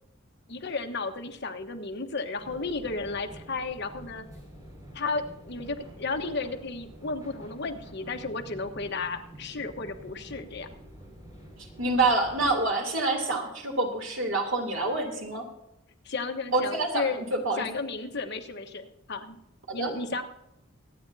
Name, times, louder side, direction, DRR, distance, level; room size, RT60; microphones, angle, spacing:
voice 1, 0.5-4.2 4.9-10.7 16.0-17.3 17.6-19.4 19.7-20.2, left 3 dB, 55° left, 5 dB, 1.2 m, -33 dB
sound 1, 2.4-12.5, right 1 dB, 15° right, 5.0 m, -48 dB
voice 2, 11.8-15.4 16.5-17.1 17.3-17.7 19.8-19.9, right 2 dB, 70° right, 1 dB, 3.0 m, -26 dB
24.0 x 9.3 x 2.7 m, 0.85 s
head